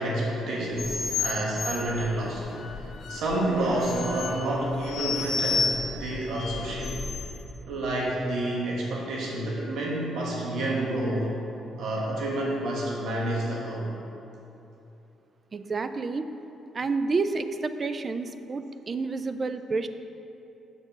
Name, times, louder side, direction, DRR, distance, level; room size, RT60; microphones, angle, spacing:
voice 1, 0.0-5.7 6.0-7.0 7.7-11.3 11.8-13.9, right 1 dB, 75° right, -3 dB, 1.4 m, -29 dB
sound 1, 0.7-7.4, left 4 dB, 55° left, 0.8 m, -32 dB
voice 2, 15.5-16.3 16.7-19.9, right 4 dB, 35° right, 10 dB, 0.4 m, -29 dB
7.0 x 4.4 x 5.9 m, 2.9 s
cardioid pair, 90°, 0 cm